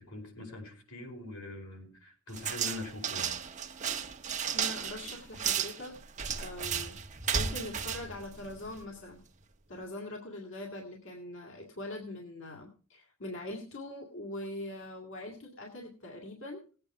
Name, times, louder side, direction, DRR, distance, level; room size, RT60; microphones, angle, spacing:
voice 1, 0.0-3.4, left 2 dB, 85° left, 2 dB, 4.9 m, -43 dB
sound 1, 2.3-8.9, right 7 dB, 35° right, 1.0 m, -34 dB
voice 2, 4.5-7.0 7.3-9.2 9.7-16.6, left 1 dB, 60° left, 0 dB, 2.1 m, -42 dB
18.5 x 8.7 x 4.8 m, 0.40 s
head